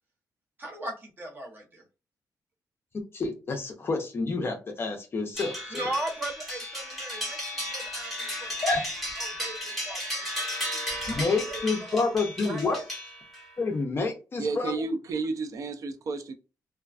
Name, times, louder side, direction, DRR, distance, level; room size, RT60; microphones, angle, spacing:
voice 1, 0.6-1.8 5.7-7.4 7.7-8.1 8.4-8.5 9.2-12.0 12.4-12.8, right 1 dB, 30° right, 0.7 m, -38 dB
voice 2, 2.9-5.8 8.6-8.8 11.1-12.8 13.6-14.8, left 3 dB, 35° left, 0.4 m, -29 dB
sound 1, 5.4-13.5, left 1 dB, ahead, 1.0 m, -34 dB
voice 3, 14.4-16.3, right 4 dB, 50° right, 0.3 m, -31 dB
2.4 x 2.2 x 2.3 m
wide cardioid pair, 170°, 7 cm